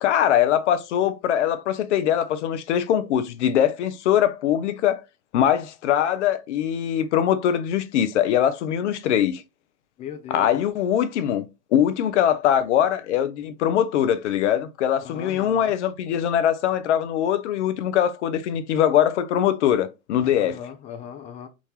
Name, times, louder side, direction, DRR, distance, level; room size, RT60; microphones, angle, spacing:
voice 1, 0.0-5.0 5.3-9.4 10.3-20.6, left 10 dB, 60° left, 0.6 m, -22 dB
voice 2, 10.0-10.6 15.0-15.7 20.3-21.5, left 8 dB, 20° left, 0.4 m, -38 dB
3.7 x 2.6 x 3.2 m
figure-of-eight pair, 85°, 41 cm